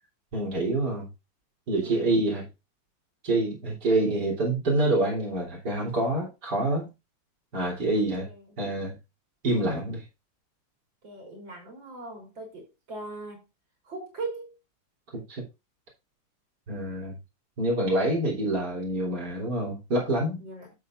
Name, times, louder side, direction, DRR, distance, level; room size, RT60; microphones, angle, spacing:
voice 1, 0.3-1.1 1.7-2.5 3.2-6.9 7.5-8.3 8.6-8.9 9.4-10.0 15.1-15.4 16.7-17.2 17.6-20.4, right 2 dB, 60° right, 3.9 m, -26 dB
voice 2, 7.9-8.4 11.0-13.4 13.9-14.5 20.4-20.7, right 3 dB, 85° right, 4.3 m, -39 dB
12.0 x 7.2 x 2.5 m
omnidirectional pair, 2.0 m